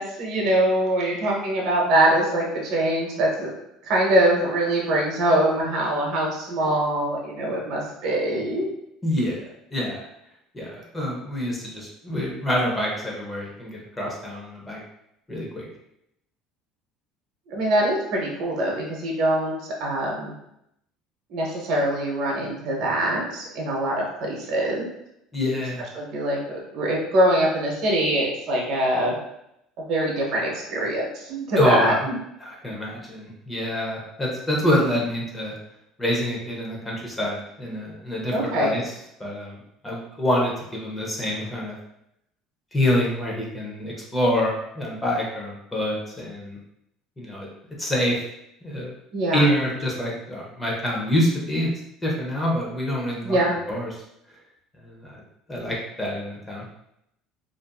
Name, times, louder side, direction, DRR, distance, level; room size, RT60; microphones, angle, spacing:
voice 1, 0.0-3.5 3.8-8.7 17.5-19.5 19.8-20.3 21.3-24.9 25.9-29.1 29.9-32.2 38.3-38.8 49.1-49.4 53.2-53.5, right 1 dB, 60° right, -2 dB, 0.8 m, -23 dB
voice 2, 9.0-9.4 9.7-10.0 10.5-14.8 15.3-15.6 25.3-25.8 31.6-31.9 32.4-35.6 36.0-38.8 39.2-39.6 39.8-41.8 42.7-46.6 47.2-47.5 47.8-48.2 48.6-48.9 49.3-51.7 52.0-53.4 53.7-53.9 54.8-55.2 55.5-56.6, equal, 10° left, -3 dB, 0.7 m, -26 dB
2.5 x 2.5 x 2.2 m, 0.79 s
cardioid pair, 145°, 0 cm